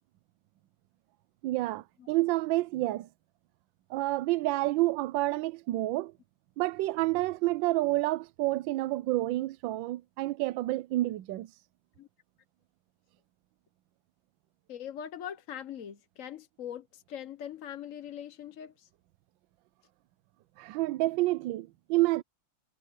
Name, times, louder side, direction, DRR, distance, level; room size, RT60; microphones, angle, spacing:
voice 1, 1.4-3.1 3.9-6.1 6.6-11.5 20.6-22.2, right 18 dB, 75° right, 1.3 m, -29 dB
voice 2, 14.7-18.9, left 9 dB, 50° left, 1.0 m, -42 dB
omnidirectional pair, 2.3 m